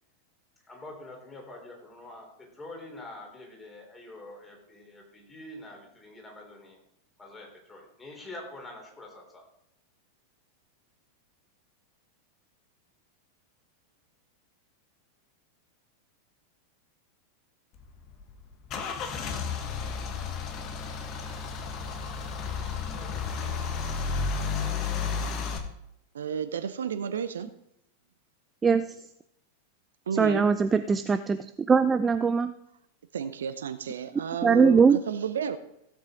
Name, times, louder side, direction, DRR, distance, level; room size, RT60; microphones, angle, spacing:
voice 1, 0.7-6.8 7.2-9.4, left 2 dB, 15° left, 0 dB, 3.7 m, -45 dB
Car / Engine starting / Idling, 17.8-25.6, left 5 dB, 35° left, 1.6 m, -32 dB
voice 2, 26.1-27.5 30.1-30.5 33.1-35.6, right 7 dB, 65° right, 12 dB, 0.7 m, -32 dB
voice 3, 30.2-31.4 31.7-32.5 34.4-35.0, right 5 dB, 15° right, 11 dB, 0.4 m, -21 dB
16.0 x 8.3 x 3.8 m, 0.78 s
figure-of-eight pair, 90°, 0 cm